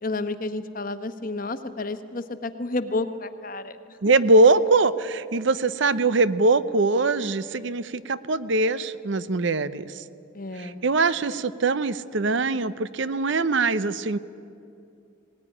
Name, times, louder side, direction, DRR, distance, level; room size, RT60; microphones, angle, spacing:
voice 1, 0.0-4.0 10.3-10.8, left 2 dB, 40° left, 10 dB, 1.0 m, -31 dB
voice 2, 4.0-10.0 10.6-14.2, right 3 dB, 65° right, 15 dB, 0.7 m, -22 dB
19.0 x 18.5 x 9.9 m, 2.6 s
head